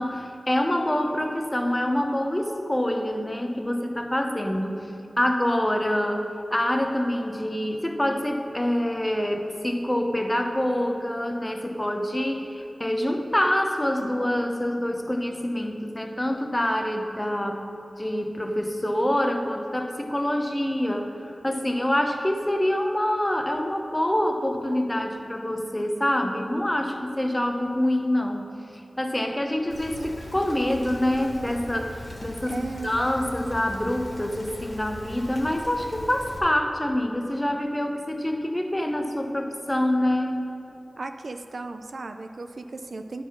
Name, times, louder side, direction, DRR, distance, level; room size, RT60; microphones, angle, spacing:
voice 1, 0.0-40.6, left 1 dB, 15° left, 4 dB, 0.7 m, -26 dB
Rain, 29.7-36.4, left 1 dB, 75° left, 1.7 m, -40 dB
voice 2, 32.5-32.9 41.0-43.2, right 3 dB, 70° right, 6 dB, 0.4 m, -36 dB
9.8 x 4.2 x 6.1 m, 2.8 s
wide cardioid pair, 70°, 0 cm